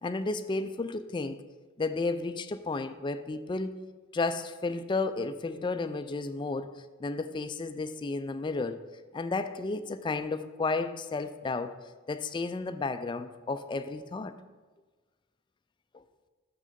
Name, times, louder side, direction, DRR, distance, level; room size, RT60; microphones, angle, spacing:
voice 1, 0.0-1.4 1.8-3.7 4.1-6.7 7.0-8.8 9.1-11.8 12.1-14.4 15.9-16.0, left 3 dB, 20° left, 0.3 m, -32 dB
6.7 x 6.2 x 5.2 m
head